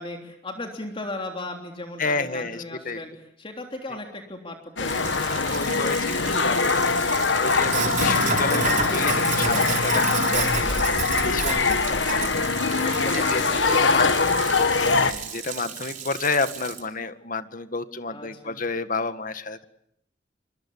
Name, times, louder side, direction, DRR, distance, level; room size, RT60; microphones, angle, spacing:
voice 1, 0.0-3.1 3.4-6.5 8.0-8.4 12.7-14.1 18.1-18.6, left 2 dB, 30° left, 3 dB, 3.4 m, -37 dB
voice 2, 2.0-3.0 5.1-6.0 6.3-12.3 13.1-14.1 14.9-19.7, left 4 dB, 50° left, 10 dB, 1.9 m, -30 dB
sound 1, 4.8-15.1, left 4 dB, 85° left, 1.6 m, -23 dB
Sink (filling or washing), 4.8-16.8, right 5 dB, 45° right, 4.6 m, -31 dB
sound 2, 9.1-15.3, right 1 dB, 90° right, 3.1 m, -38 dB
27.0 x 25.5 x 8.6 m, 0.74 s
head